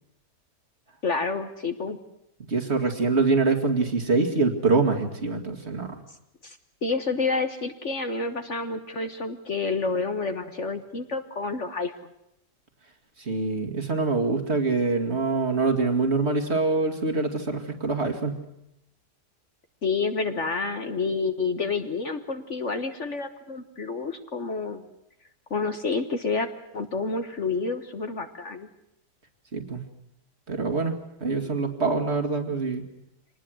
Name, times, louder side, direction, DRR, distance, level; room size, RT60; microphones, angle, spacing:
voice 1, 1.0-2.0 6.4-11.9 19.8-24.8 25.5-28.7, left 4 dB, 45° left, 8 dB, 1.6 m, -29 dB
voice 2, 2.4-6.0 13.2-18.4 29.5-29.8 30.5-31.0 31.2-32.9, right 3 dB, 40° right, 4 dB, 2.5 m, -25 dB
25.0 x 19.5 x 7.9 m, 0.81 s
omnidirectional pair, 1.8 m